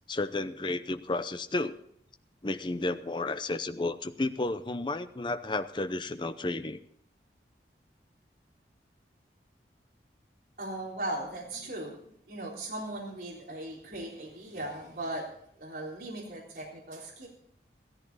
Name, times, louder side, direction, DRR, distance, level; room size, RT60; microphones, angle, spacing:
voice 1, 0.1-1.7 2.4-6.8, left 2 dB, 25° left, 10 dB, 0.7 m, -32 dB
voice 2, 10.6-12.0 12.3-15.2 15.6-17.3, right 1 dB, 60° right, -5 dB, 3.8 m, -38 dB
15.0 x 14.0 x 4.1 m, 0.69 s
head